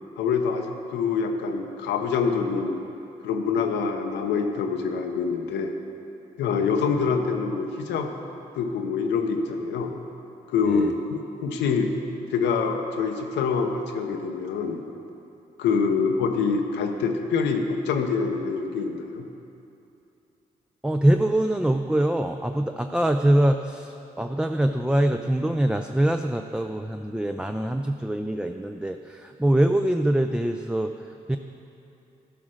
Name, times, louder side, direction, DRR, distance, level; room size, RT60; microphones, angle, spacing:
voice 1, 0.2-2.8 3.2-5.7 6.4-8.1 8.5-9.9 10.5-11.9 12.3-14.8 15.6-19.2, left 5 dB, 90° left, 4 dB, 0.7 m, -25 dB
voice 2, 20.8-30.9 31.3-31.4, right 1 dB, 5° right, 6 dB, 0.4 m, -23 dB
11.0 x 5.0 x 6.2 m, 2.7 s
supercardioid pair, 45°, 18 cm